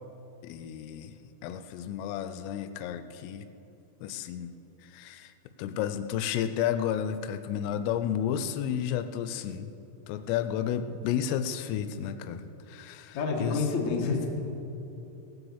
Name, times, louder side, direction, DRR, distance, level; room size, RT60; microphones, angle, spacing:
voice 1, 0.4-1.1 1.4-3.5 4.0-4.5 4.8-5.3 5.6-9.7 10.1-13.7, left 9 dB, 85° left, 10 dB, 3.2 m, -32 dB
voice 2, 13.1-14.3, left 4 dB, 65° left, 0 dB, 1.7 m, -28 dB
18.0 x 6.9 x 7.2 m, 3.0 s
omnidirectional pair, 5.9 m